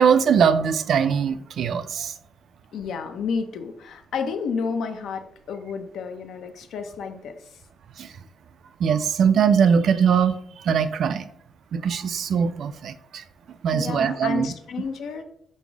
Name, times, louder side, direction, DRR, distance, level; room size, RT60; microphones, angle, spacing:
voice 1, 0.0-2.1 8.0-8.1 8.8-11.3 11.7-13.2 13.6-14.5, right 7 dB, 55° right, 12 dB, 0.3 m, -21 dB
voice 2, 2.7-7.3 13.7-15.2, left 5 dB, 65° left, 6 dB, 0.6 m, -31 dB
5.3 x 2.0 x 4.7 m, 0.68 s
cardioid pair, 150°, 0 cm